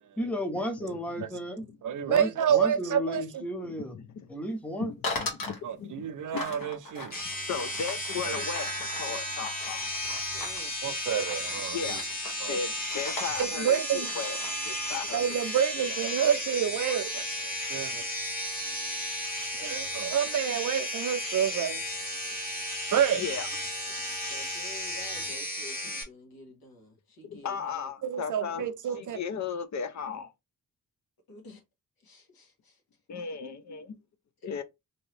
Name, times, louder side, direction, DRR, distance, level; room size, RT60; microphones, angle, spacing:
voice 1, 0.2-1.6 2.0-3.9 4.3-4.9, equal, 5° left, 0.5 m, -33 dB
voice 2, 1.8-3.4 5.6-7.2 8.2-8.3 10.8-11.9 12.4-12.6 13.4-14.1 15.1-18.0 19.5-21.8 22.9-23.2 28.0-29.2, right 8 dB, 60° right, 0.5 m, -28 dB
voice 3, 3.9-4.3 4.8-6.6 7.5-9.9 11.7-12.0 12.4-12.7 12.9-14.4 14.7-15.4 23.2-23.5 27.2-28.7 28.9-30.3 33.1-34.0 34.4-34.6, left 6 dB, 55° left, 0.5 m, -36 dB
sound 1, 5.0-5.6 6.3-10.6 11.2-11.6 11.8-12.4 12.7-14.9, left 2 dB, 70° left, 1.2 m, -39 dB
sound 2, 7.1-26.0, left 1 dB, 25° left, 1.0 m, -34 dB
voice 4, 10.3-10.7 24.3-27.9 28.5-28.7 31.3-31.6 32.0-32.8, left 1 dB, 90° left, 1.3 m, -50 dB
2.8 x 2.7 x 3.2 m
wide cardioid pair, 175°, 35 cm